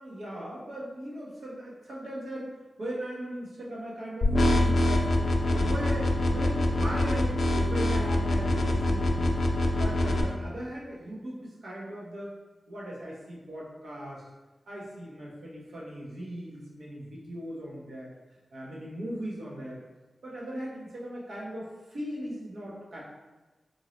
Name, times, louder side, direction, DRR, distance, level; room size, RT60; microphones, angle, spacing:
voice 1, 0.0-2.5 2.8-5.2 5.4-9.4 9.7-12.4 12.7-14.2 14.7-18.1 18.5-19.8 20.2-23.0, equal, 80° right, -4 dB, 0.9 m, -38 dB
sound 1, 4.2-10.2, left 1 dB, 55° left, 0.4 m, -25 dB
3.9 x 2.7 x 3.1 m, 1.2 s
wide cardioid pair, 110°, 0 cm